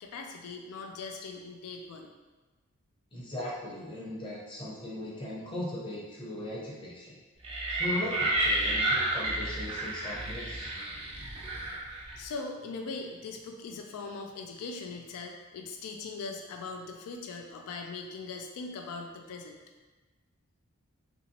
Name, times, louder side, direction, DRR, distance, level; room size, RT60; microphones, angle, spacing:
voice 1, 0.0-2.1 11.7-19.6, left 4 dB, 85° left, 3 dB, 0.3 m, -40 dB
voice 2, 3.1-7.2 7.7-10.7, left 1 dB, 20° left, -6 dB, 0.6 m, -38 dB
sound 1, 7.4-12.3, right 1 dB, 25° right, 0.4 m, -31 dB
2.8 x 2.7 x 2.8 m, 1.3 s
head